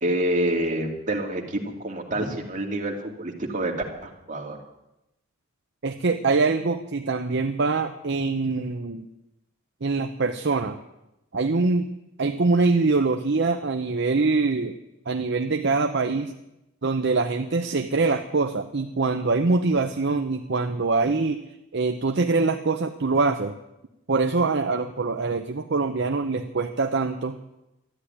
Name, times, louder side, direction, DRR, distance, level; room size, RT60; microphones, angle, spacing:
voice 1, 0.0-3.7 4.0-4.6, right 1 dB, 40° right, 1 dB, 2.5 m, -27 dB
voice 2, 5.8-9.1 9.8-10.8 11.3-11.9 12.2-14.8 15.1-16.3 16.8-21.4 21.7-23.6 24.1-27.4, right 3 dB, 55° right, 6 dB, 0.7 m, -24 dB
13.0 x 10.0 x 9.9 m, 0.92 s
head